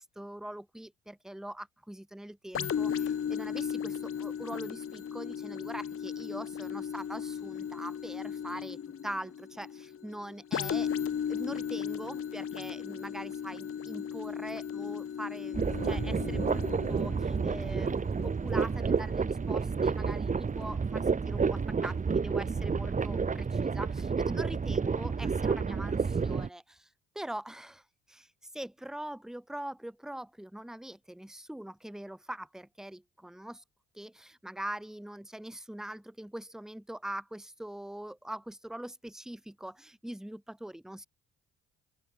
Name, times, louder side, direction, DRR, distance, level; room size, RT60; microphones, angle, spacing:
voice 1, 0.0-10.9 11.3-26.9 27.1-33.6 33.9-41.1, right 1 dB, ahead, 1.4 m, -43 dB
sound 1, 2.5-20.1 20.6-20.7, left 8 dB, 45° left, 1.7 m, -36 dB
sound 2, 15.5-26.5, right 5 dB, 25° right, 1.0 m, -30 dB
open air
supercardioid pair, 65°, 32 cm